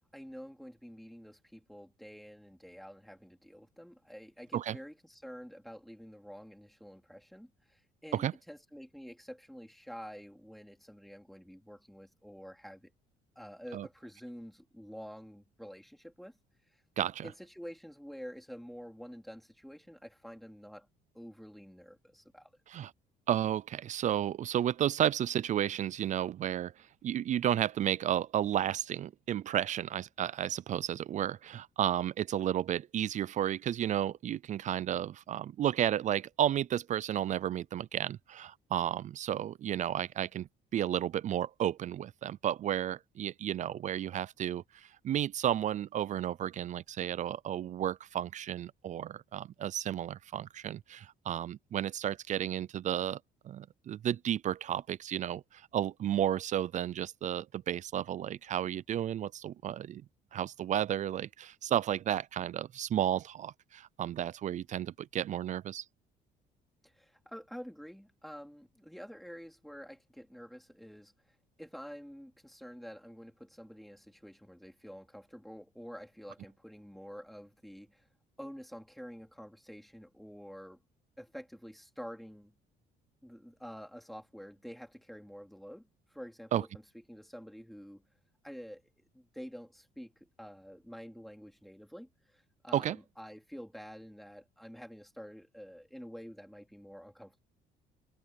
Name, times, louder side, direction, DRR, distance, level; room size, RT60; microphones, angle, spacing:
voice 1, 0.1-12.9 13.4-16.4 16.7-16.8 17.2-20.9 21.1-22.5 66.8-78.1 78.4-80.8 81.2-82.6 83.2-86.7 86.9-88.0 88.4-97.4, equal, ahead, 4.0 m, -48 dB
voice 2, 17.0-17.3 22.7-22.9 23.3-53.2 53.4-60.0 60.3-65.8 86.5-86.6 92.7-93.0, right 11 dB, 45° right, 0.4 m, -32 dB
cardioid pair, 110°, 17 cm